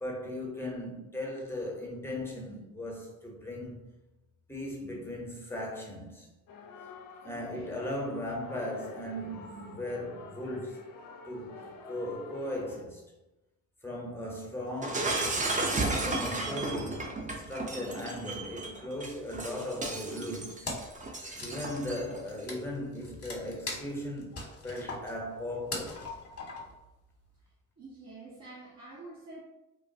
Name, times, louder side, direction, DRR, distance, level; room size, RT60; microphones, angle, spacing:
voice 1, 0.0-3.9 4.5-6.3 7.2-10.8 11.2-13.0 13.8-15.2 15.7-17.1 17.3-20.7 21.4-26.0, left 1 dB, 5° left, 0.9 m, -37 dB
sound 1, 6.5-12.8, left 3 dB, 55° left, 0.5 m, -49 dB
Shatter, 14.8-22.2, right 2 dB, 20° right, 0.5 m, -33 dB
Wood, 20.6-21.0 21.3-26.9, left 3 dB, 35° left, 0.9 m, -40 dB
voice 2, 27.8-29.4, right 2 dB, 40° right, 1.0 m, -47 dB
3.0 x 2.1 x 2.7 m
hypercardioid pair, 55°, 42 cm